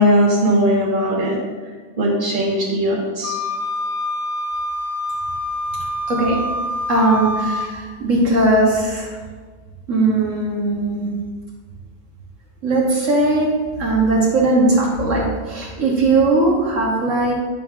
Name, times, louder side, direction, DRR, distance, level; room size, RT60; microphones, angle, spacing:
voice 1, 0.0-1.4 2.0-3.4, equal, 35° right, -4 dB, 1.5 m, -18 dB
Wind instrument woodwind instrument, 3.2-7.7, left 1 dB, 85° left, 0.4 m, -26 dB
voice 2, 6.9-9.2 9.9-11.1 12.6-17.3, right 2 dB, 65° right, -4 dB, 1.4 m, -18 dB
8.9 x 6.6 x 2.4 m, 1.5 s
omnidirectional pair, 1.5 m